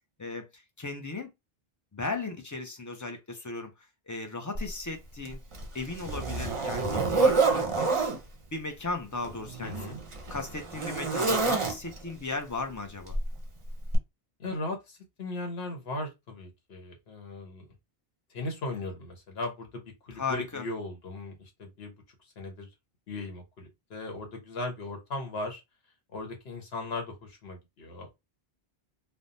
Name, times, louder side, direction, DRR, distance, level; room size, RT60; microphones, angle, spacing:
voice 1, 0.2-1.3 1.9-3.7 4.1-5.4 5.7-7.9 8.5-9.7 10.3-13.2 20.2-20.6, left 3 dB, 30° left, 0.3 m, -36 dB
Zipper (clothing), 4.5-4.7 5.2-8.2 9.1-12.1 13.1-13.3 13.9-14.0, right 4 dB, 35° right, 0.6 m, -28 dB
voice 2, 9.6-10.0 14.4-17.6 18.3-21.9 22.4-22.7 23.1-25.6 26.1-28.1, left 2 dB, 80° left, 1.2 m, -37 dB
3.3 x 2.0 x 2.6 m
omnidirectional pair, 1.0 m